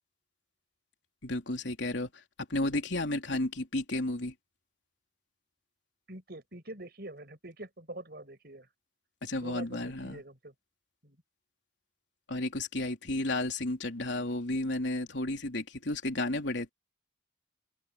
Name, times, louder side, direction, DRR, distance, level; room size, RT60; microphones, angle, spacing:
voice 1, 1.2-2.1 2.5-4.3 9.2-10.2 12.3-16.7, left 2 dB, 80° left, 3.3 m, -32 dB
voice 2, 6.1-8.7 9.3-10.5 11.0-11.2, right 1 dB, 55° right, 6.3 m, -45 dB
head